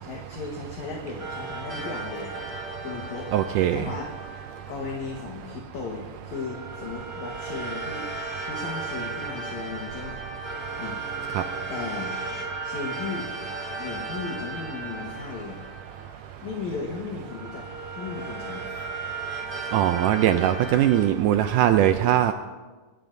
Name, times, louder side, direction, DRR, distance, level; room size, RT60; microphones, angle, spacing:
voice 1, 0.0-2.3 2.8-3.3 3.7-4.1 4.7-8.1 8.4-10.2 10.8-11.0 11.7-12.2 12.6-13.3 13.8-15.6 16.4-17.7 17.9-18.6, left 4 dB, 60° left, 0 dB, 2.4 m, -36 dB
sound 1, 1.2-5.4 6.3-16.7 17.3-21.1, right 3 dB, 25° right, 1.4 m, -36 dB
voice 2, 3.3-3.9 11.4-11.5 19.7-22.3, right 11 dB, 85° right, 8 dB, 1.8 m, -21 dB
21.5 x 17.5 x 2.7 m, 1.3 s
omnidirectional pair, 4.2 m